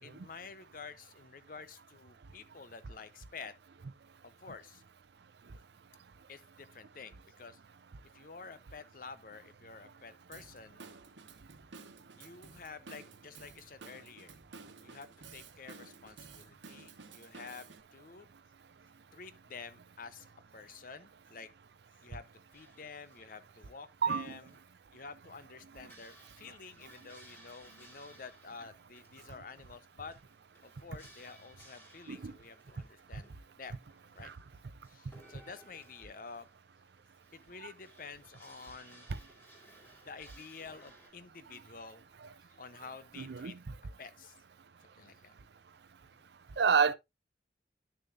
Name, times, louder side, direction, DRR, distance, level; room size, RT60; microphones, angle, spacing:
voice 1, 0.0-3.5 4.2-4.8 6.3-7.6 8.1-10.8 12.2-14.3 14.8-18.3 19.1-20.3 20.5-21.5 22.0-22.3 22.5-24.5 24.9-30.2 30.6-33.8 34.1-34.3 34.9-36.5 37.3-39.1 40.0-43.6 44.0-44.4 45.0-45.3 46.1-46.2, left 5 dB, 50° left, 0.7 m, -50 dB
Drum kit / Drum, 10.3-17.8, right 4 dB, 90° right, 1.1 m, -53 dB
sound 1, 22.5-41.1, right 1 dB, 15° left, 3.1 m, -61 dB
voice 2, 24.0-24.4 32.1-32.3 34.2-34.3 43.2-43.6 46.6-46.9, right 6 dB, 70° right, 0.5 m, -28 dB
10.5 x 6.8 x 2.5 m
head